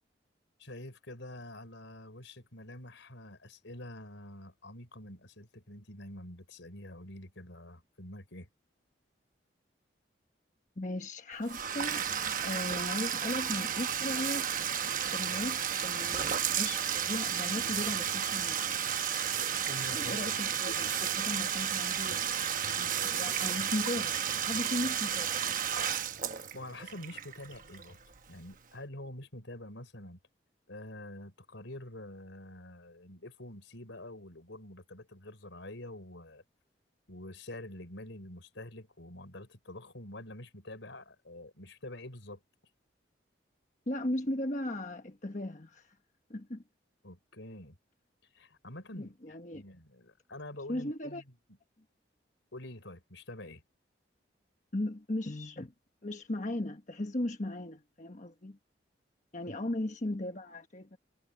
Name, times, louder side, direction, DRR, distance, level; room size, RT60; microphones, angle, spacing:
voice 1, 0.6-8.5 19.7-20.2 26.5-28.0 28.3-30.2 30.7-36.4 37.1-42.4 47.0-47.8 48.3-51.2 52.5-53.6 59.5-59.6, left 1 dB, 85° left, 4.8 m, -46 dB
voice 2, 10.8-12.1 12.4-14.5 15.1-18.8 19.9-22.3 22.7-25.5 43.9-46.0 46.3-46.6 49.0-49.6 50.7-51.2 54.7-55.7 56.0-58.6 59.3-61.0, left 1 dB, 40° left, 1.2 m, -37 dB
Bathtub (filling or washing), 11.4-28.2, right 8 dB, 45° right, 1.0 m, -33 dB
sound 1, 14.2-14.5 16.2-16.4 17.6-17.9 19.2-19.5 20.8-21.2 22.8-23.6, right 11 dB, 90° right, 2.1 m, -38 dB
head